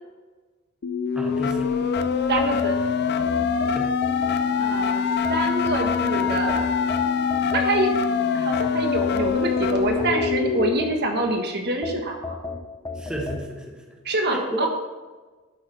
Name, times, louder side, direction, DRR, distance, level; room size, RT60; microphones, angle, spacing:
sound 1, 0.8-10.8, left 6 dB, 50° left, 0.5 m, -24 dB
voice 1, 1.1-1.8 3.7-3.9 12.9-13.8 14.3-14.7, equal, 5° right, 0 dB, 1.3 m, -32 dB
sound 2, 2.0-4.7 5.2-8.0 8.5-11.3 11.8-13.5, left 3 dB, 15° left, 0.9 m, -35 dB
voice 2, 2.3-2.8 4.6-6.7 7.5-8.0 8.3-12.4 14.0-14.7, right 2 dB, 55° right, 3 dB, 1.5 m, -26 dB
11.5 x 8.1 x 3.4 m, 1.3 s
head